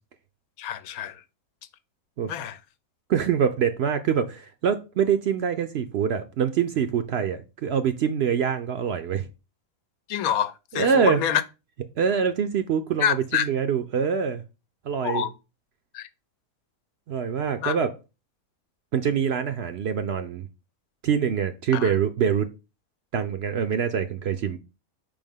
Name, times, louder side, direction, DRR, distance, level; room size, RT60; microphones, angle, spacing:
voice 1, 0.6-1.2 2.3-2.6 10.1-11.4 13.0-13.5 15.0-15.3 15.9-16.1 17.6-17.7 21.7-21.9, left 9 dB, 85° left, 1.1 m, -26 dB
voice 2, 3.1-9.3 10.7-11.2 12.0-14.4 14.8-15.2 17.1-17.9 18.9-20.5 21.0-22.5 23.1-24.6, right 7 dB, 65° right, 0.7 m, -24 dB
5.6 x 3.5 x 5.3 m
omnidirectional pair, 1.5 m